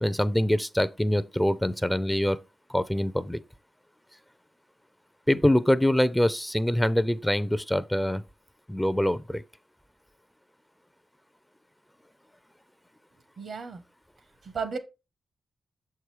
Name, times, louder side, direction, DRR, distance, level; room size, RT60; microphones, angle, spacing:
voice 1, 0.0-2.4 2.7-3.4 5.3-8.2 8.7-9.4, left 1 dB, 5° left, 0.4 m, -24 dB
voice 2, 13.4-13.8 14.4-14.8, right 5 dB, 70° right, 0.9 m, -33 dB
6.4 x 4.7 x 3.1 m
cardioid pair, 60°, 0 cm